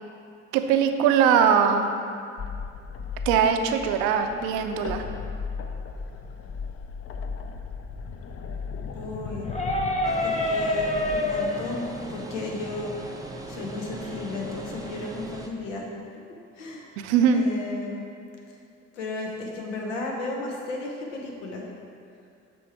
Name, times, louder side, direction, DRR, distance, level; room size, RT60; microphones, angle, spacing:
voice 1, 0.5-1.9 3.3-5.0 17.0-17.4, right 7 dB, 75° right, 7 dB, 0.5 m, -21 dB
sound 1, 2.4-11.2, left 5 dB, 40° left, 0.6 m, -36 dB
voice 2, 8.9-9.5 10.2-13.2 13.5-15.9 16.6-17.0 17.3-18.0 18.9-21.7, left 2 dB, 90° left, 0 dB, 0.8 m, -34 dB
sound 2, 9.4-15.1, left 1 dB, 20° left, 0.9 m, -30 dB
sound 3, 10.0-15.5, right 2 dB, 10° right, 0.5 m, -39 dB
7.0 x 3.4 x 4.7 m, 2.4 s
hypercardioid pair, 55°, 36 cm